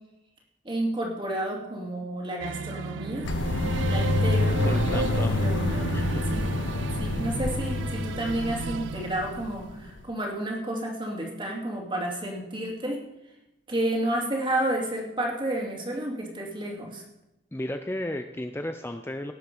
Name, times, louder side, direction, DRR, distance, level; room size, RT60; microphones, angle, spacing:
voice 1, 0.6-3.3 3.8-6.0 6.3-6.5 6.9-13.0 13.7-17.0, right 1 dB, 25° right, -1 dB, 2.8 m, -31 dB
sound 1, 2.4-9.9, right 6 dB, 75° right, 0.3 m, -34 dB
sound 2, 3.2-10.0, left 2 dB, 80° left, 0.8 m, -27 dB
voice 2, 4.5-5.4 5.9-6.2 17.5-19.3, left 1 dB, 15° left, 6 dB, 0.6 m, -33 dB
18.0 x 7.6 x 5.4 m, 0.91 s
head